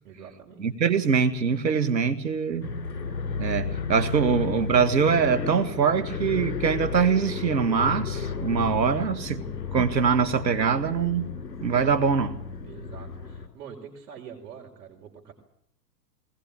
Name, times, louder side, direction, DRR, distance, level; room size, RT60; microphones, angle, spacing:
voice 1, 0.0-0.7 12.6-15.3, right 7 dB, 60° right, 4.9 m, -45 dB
voice 2, 0.6-2.7 3.4-11.3 11.6-12.4, right 6 dB, 85° right, 1.9 m, -23 dB
sound 1, 2.6-13.5, left 6 dB, 85° left, 3.5 m, -33 dB
20.5 x 20.0 x 8.8 m
hypercardioid pair, 115°, 49 cm